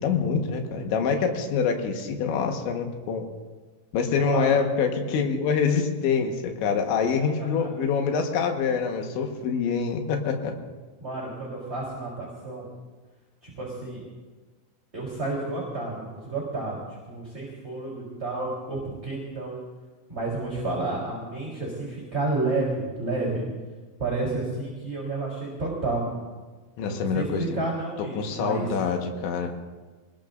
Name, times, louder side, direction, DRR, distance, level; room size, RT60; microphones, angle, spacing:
voice 1, 0.0-3.3 3.9-10.5 26.8-27.6 28.2-29.5, left 6 dB, 75° left, 3 dB, 3.7 m, -25 dB
voice 2, 7.2-7.7 11.0-12.7 13.4-14.0 14.9-16.8 17.1-19.6 20.1-23.5 24.0-26.2 26.9-28.7, right 2 dB, 15° right, -5 dB, 3.2 m, -31 dB
25.5 x 20.5 x 2.6 m, 1.3 s
omnidirectional pair, 5.3 m